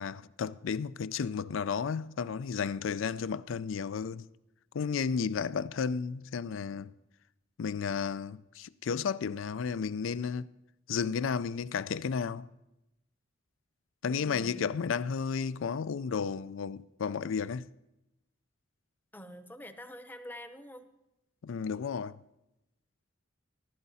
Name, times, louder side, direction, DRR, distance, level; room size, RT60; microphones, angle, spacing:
voice 1, 0.0-4.3 4.7-6.9 7.6-10.5 10.9-12.5 14.0-17.7 21.4-22.2, left 6 dB, 70° left, 0.4 m, -33 dB
voice 2, 14.0-14.7 19.1-20.9, equal, 10° left, 0.7 m, -46 dB
15.0 x 11.5 x 4.2 m
head